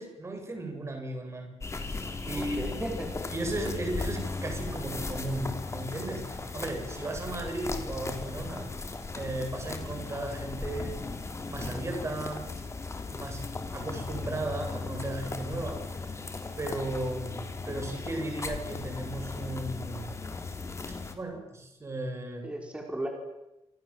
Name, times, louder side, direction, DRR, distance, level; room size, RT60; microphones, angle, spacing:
voice 1, 0.0-2.6 3.3-8.7 9.1-11.0 11.5-12.5 13.0-13.5 13.7-15.8 16.6-20.1 21.1-22.5, right 2 dB, 25° right, 3 dB, 8.0 m, -35 dB
sound 1, 1.6-21.1, left 3 dB, 25° left, 3.7 m, -37 dB
voice 2, 2.3-3.1 22.4-23.1, right 1 dB, 10° right, 1 dB, 5.3 m, -35 dB
28.5 x 27.0 x 7.7 m, 0.95 s
wide cardioid pair, 135°, 11 cm